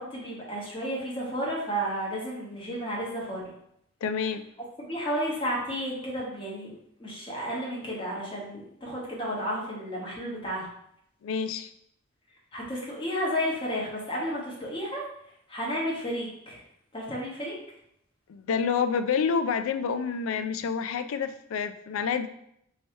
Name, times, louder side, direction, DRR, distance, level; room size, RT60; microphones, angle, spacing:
voice 1, 0.0-3.4 4.8-10.7 12.5-15.0 15.5-16.6 16.9-17.5, equal, 25° left, -5 dB, 1.2 m, -32 dB
voice 2, 4.0-4.4 11.2-11.7 18.3-22.3, left 6 dB, 85° left, 11 dB, 0.3 m, -28 dB
3.2 x 2.7 x 4.4 m, 0.73 s
head